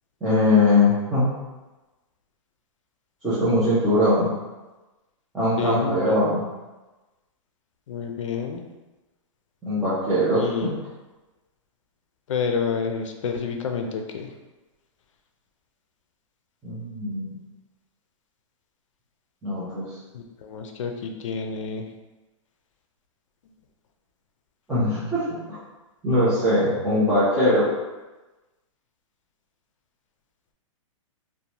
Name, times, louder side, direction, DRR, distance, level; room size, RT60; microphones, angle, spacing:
voice 1, 0.2-1.3 3.2-4.3 5.3-6.4 9.6-10.7 16.6-17.4 19.4-19.9 24.7-25.4 26.0-27.7, left 1 dB, 5° right, -14 dB, 0.3 m, -21 dB
voice 2, 5.6-6.3 7.9-8.6 10.3-10.7 12.3-14.3 20.1-21.9, left 5 dB, 75° left, 4 dB, 0.4 m, -29 dB
2.6 x 2.1 x 2.8 m, 1.1 s
hypercardioid pair, 170°, 17 cm